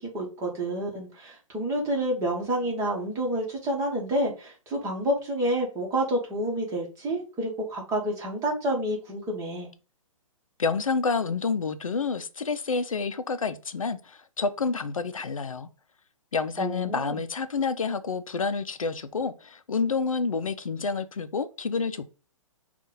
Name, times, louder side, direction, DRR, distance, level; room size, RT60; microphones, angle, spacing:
voice 1, 0.1-9.7 16.6-17.2, right 1 dB, 20° right, 1.4 m, -29 dB
voice 2, 10.6-15.7 16.3-22.1, left 4 dB, 80° left, 0.5 m, -29 dB
5.3 x 2.5 x 3.8 m
figure-of-eight pair, 125°, 17 cm